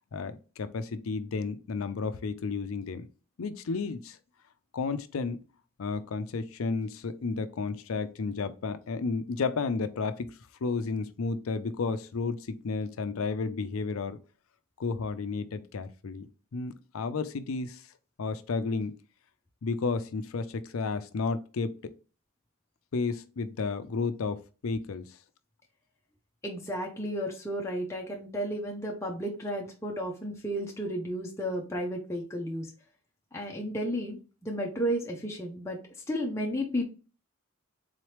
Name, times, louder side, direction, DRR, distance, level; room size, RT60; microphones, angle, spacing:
voice 1, 0.1-3.1 3.4-4.2 4.7-5.4 5.8-14.2 14.8-16.3 16.5-17.8 18.2-18.9 19.6-21.8 22.9-25.2, left 4 dB, 85° left, 0.5 m, -32 dB
voice 2, 26.4-32.7 33.3-35.8 36.1-36.8, equal, 15° left, 0.6 m, -33 dB
3.9 x 3.0 x 3.2 m
head